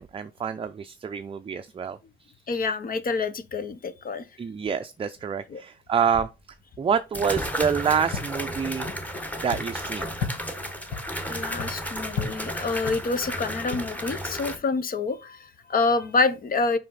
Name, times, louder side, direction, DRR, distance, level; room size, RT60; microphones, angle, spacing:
voice 1, 0.0-2.0 4.4-6.3 6.8-8.9 9.4-10.1, right 7 dB, 30° right, 0.5 m, -27 dB
voice 2, 2.5-4.2 5.5-5.6 11.3-16.8, left 3 dB, 45° left, 1.0 m, -27 dB
sound 1, 6.1-6.2 7.1-14.6, equal, 5° left, 1.3 m, -33 dB
sound 2, 7.6-14.3, left 6 dB, 80° left, 1.5 m, -38 dB
5.6 x 5.1 x 3.9 m
cardioid pair, 90°, 20 cm